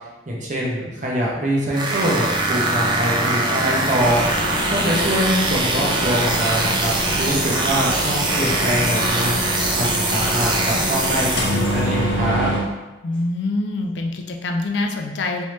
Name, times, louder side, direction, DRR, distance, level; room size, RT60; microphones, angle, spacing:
voice 1, 0.3-4.4 4.7-12.5, equal, 40° right, -3 dB, 0.7 m, -24 dB
sound 1, 1.7-11.9, right 2 dB, 25° right, 0.3 m, -23 dB
sound 2, 4.0-12.6, left 1 dB, 85° left, 0.9 m, -25 dB
sound 3, 8.3-8.9 11.6-12.2 13.1-13.2, left 1 dB, 25° left, 1.5 m, -35 dB
voice 2, 13.0-15.4, left 2 dB, 65° left, 3 dB, 0.4 m, -25 dB
3.2 x 2.7 x 3.2 m, 1.1 s
head